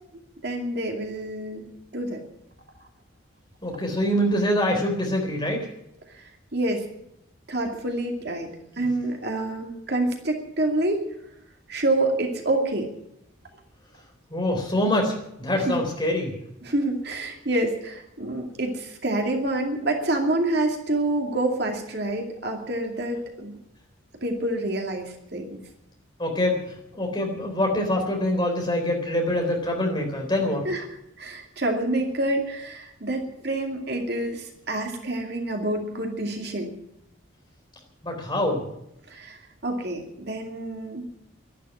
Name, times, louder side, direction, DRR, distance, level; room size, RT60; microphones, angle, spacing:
voice 1, 0.4-2.2 6.1-6.9 7.5-8.5 8.8-11.0 11.7-12.9 15.7-15.8 16.6-23.6 24.2-25.6 30.6-30.9 31.2-36.8 39.1-41.1, right 1 dB, 55° right, 2 dB, 2.4 m, -27 dB
voice 2, 3.6-5.7 8.8-8.9 14.3-15.1 15.4-16.3 26.2-30.7 38.0-38.7, left 1 dB, 20° left, 1 dB, 3.8 m, -25 dB
12.0 x 12.0 x 9.8 m, 0.80 s
head